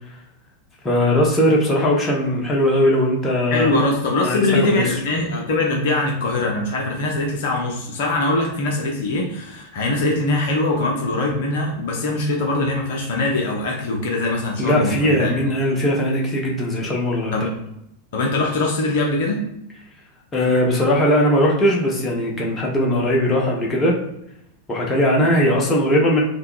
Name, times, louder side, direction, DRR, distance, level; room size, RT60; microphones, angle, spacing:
voice 1, 0.8-3.7 4.2-4.8 14.6-17.4 20.3-24.0 24.7-26.2, left 1 dB, 20° left, -2 dB, 0.8 m, -19 dB
voice 2, 3.5-15.4 17.3-17.5 18.1-19.4, left 2 dB, 55° left, 0 dB, 0.6 m, -22 dB
3.5 x 2.2 x 2.3 m, 0.79 s
figure-of-eight pair, 90°, 0 cm